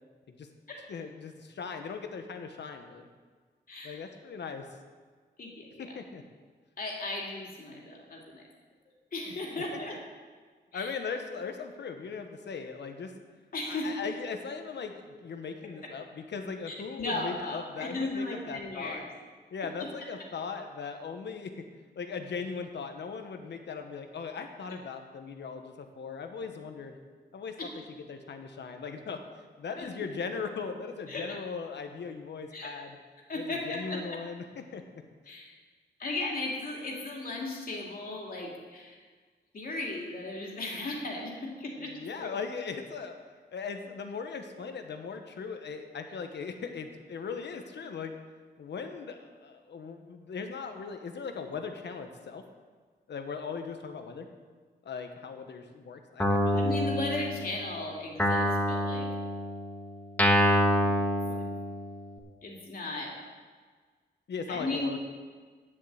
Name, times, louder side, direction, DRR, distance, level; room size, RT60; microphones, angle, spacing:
voice 1, 0.9-3.1 3.8-4.6 5.8-6.2 9.5-9.8 10.7-13.1 13.7-19.1 19.5-21.6 22.0-27.0 27.3-27.7 28.1-29.2 29.6-33.0 33.3-34.8 41.8-43.1 43.5-48.1 48.6-52.4 53.1-54.3 54.8-56.6 60.8-61.4 64.3-65.0, left 5 dB, 80° left, 6 dB, 1.2 m, -39 dB
voice 2, 3.7-4.0 5.4-5.9 6.8-8.4 9.1-9.9 10.7-10.9 13.5-13.9 16.7-19.0 27.6-27.7 29.8-29.9 31.1-31.4 32.5-32.7 33.3-34.0 35.3-35.5 36.0-39.0 39.5-42.3 56.5-59.1 62.4-63.1 64.5-64.9, left 2 dB, 55° left, -1 dB, 2.6 m, -36 dB
Guitar, 56.2-57.7 58.2-62.1, left 1 dB, 10° left, 1.4 m, -27 dB
10.5 x 7.5 x 8.0 m, 1.5 s
wide cardioid pair, 165°, 18 cm